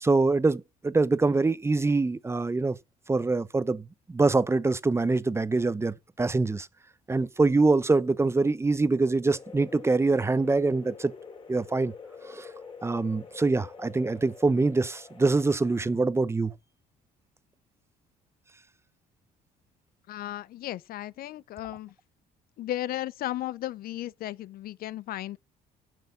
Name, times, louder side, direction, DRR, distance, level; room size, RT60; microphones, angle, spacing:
voice 1, 0.0-2.8 3.1-6.7 7.1-11.1 11.5-11.9 12.3-12.5 12.8-16.5, right 3 dB, 15° right, 0.7 m, -24 dB
sound 1, 9.2-15.9, left 5 dB, 30° left, 2.7 m, -46 dB
voice 2, 20.1-21.9 22.6-25.4, left 14 dB, 60° left, 0.5 m, -35 dB
10.5 x 6.4 x 5.6 m
cardioid pair, 110°, 17 cm